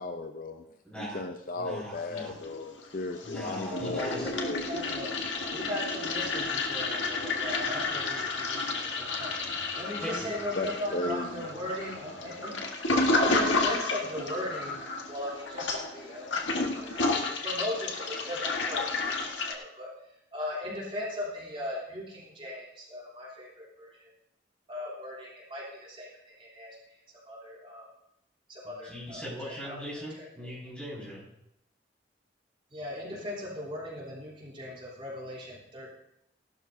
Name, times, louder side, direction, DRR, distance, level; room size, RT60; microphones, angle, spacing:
voice 1, 0.0-0.6 1.0-4.6 10.6-11.4, left 2 dB, 45° left, 7 dB, 0.6 m, -35 dB
voice 2, 0.8-1.3 1.5-2.3 3.2-4.3 10.0-10.3 28.6-31.3, equal, 5° left, -7 dB, 6.0 m, -39 dB
Toilet flush, 1.9-2.8 3.1-19.5, left 3 dB, 85° left, 1.5 m, -31 dB
voice 3, 3.7-5.1 5.5-12.6 13.1-14.8 15.1-24.1 24.7-27.9 28.5-29.8 30.1-30.5 32.7-35.9, left 1 dB, 30° right, -6 dB, 3.3 m, -39 dB
17.0 x 12.5 x 2.7 m, 0.80 s
head